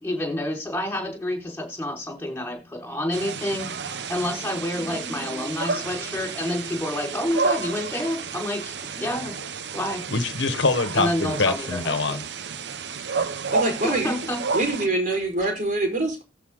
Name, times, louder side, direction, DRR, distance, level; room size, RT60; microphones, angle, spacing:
voice 1, 0.0-9.3 9.7-10.0 11.0-11.9 13.8-14.4, left 1 dB, 10° left, 4.9 m, -29 dB
sound 1, 3.1-14.9, right 4 dB, 65° right, 0.8 m, -31 dB
Motorcycle, 3.4-6.7, right 1 dB, 5° right, 6.2 m, -42 dB
voice 2, 10.1-12.3 13.1-13.3, left 3 dB, 80° left, 1.3 m, -24 dB
voice 3, 13.5-14.2 14.5-16.2, right 2 dB, 50° right, 4.7 m, -25 dB
15.0 x 5.6 x 3.9 m
head